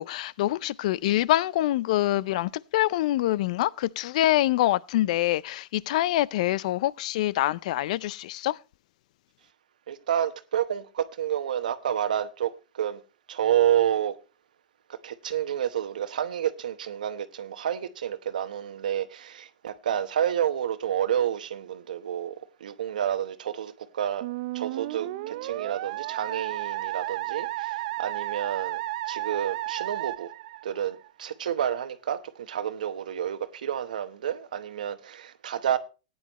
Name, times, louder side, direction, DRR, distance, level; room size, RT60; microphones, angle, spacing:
voice 1, 0.0-8.6, left 15 dB, 60° left, 0.5 m, -25 dB
voice 2, 9.9-13.0 13.3-14.1 15.0-22.3 22.6-24.3 24.5-30.3 30.6-35.8, right 10 dB, 85° right, 1.0 m, -29 dB
Musical instrument, 24.2-31.1, right 17 dB, 55° right, 0.5 m, -33 dB
15.5 x 9.5 x 3.0 m
hypercardioid pair, 135°, 4 cm